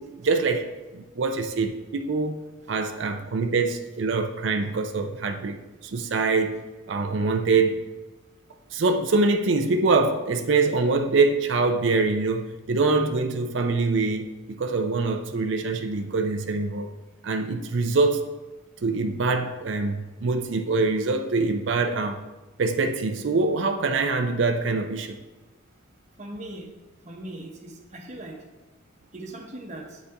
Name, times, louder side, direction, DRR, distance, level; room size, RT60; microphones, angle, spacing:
voice 1, 0.0-6.6 6.9-7.8 8.7-16.9 17.2-18.2 18.8-22.2 22.6-25.2, right 3 dB, 65° right, 5 dB, 0.5 m, -24 dB
voice 2, 26.2-26.7 27.0-28.4 29.1-30.0, right 1 dB, 35° right, 1 dB, 1.0 m, -39 dB
8.3 x 4.1 x 3.4 m, 1.2 s
head